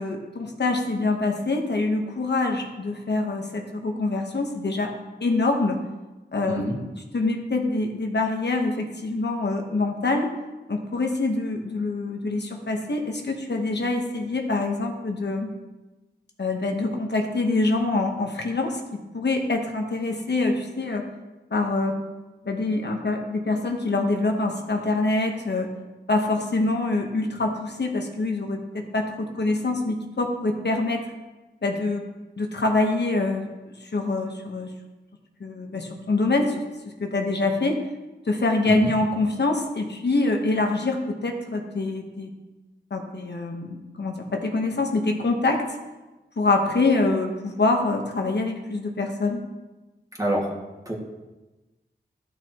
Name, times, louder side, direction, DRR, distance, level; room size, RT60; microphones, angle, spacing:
voice 1, 0.0-4.9 5.2-5.8 6.3-10.3 10.7-15.5 16.4-21.1 21.5-22.0 22.4-25.7 26.1-31.0 31.6-32.0 32.4-34.7 35.4-36.6 37.0-37.8 38.3-42.3 42.9-45.6 46.4-49.4, left 2 dB, 65° left, 2 dB, 1.0 m, -25 dB
voice 2, 6.5-6.8 38.7-38.9 50.2-50.5 50.9-51.0, right 1 dB, 20° right, -2 dB, 1.9 m, -25 dB
13.5 x 6.2 x 3.0 m, 1.1 s
wide cardioid pair, 75°, 19 cm